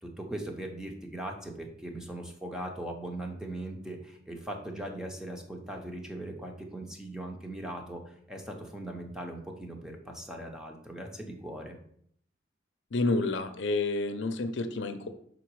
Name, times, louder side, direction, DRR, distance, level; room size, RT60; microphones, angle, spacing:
voice 1, 0.0-11.8, right 1 dB, 5° right, 2 dB, 0.8 m, -39 dB
voice 2, 12.9-15.1, left 3 dB, 70° left, 8 dB, 0.6 m, -29 dB
5.9 x 3.9 x 4.7 m, 0.66 s
head